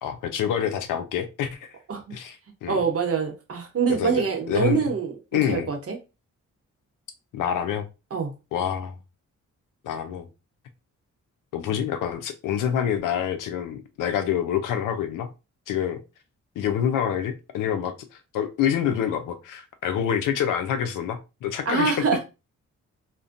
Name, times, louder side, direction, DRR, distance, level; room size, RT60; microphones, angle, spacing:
voice 1, 0.0-1.7 2.1-2.4 2.6-2.8 3.9-4.8 5.3-5.7 7.3-7.9 8.5-9.0 9.8-10.3 11.5-15.3 15.7-16.0 16.6-17.9 18.3-22.0, left 9 dB, 90° left, 0.5 m, -26 dB
voice 2, 2.7-6.0 8.1-8.3 21.7-22.2, right 6 dB, 50° right, 0.8 m, -25 dB
2.5 x 2.1 x 2.5 m
cardioid pair, 60°, 30 cm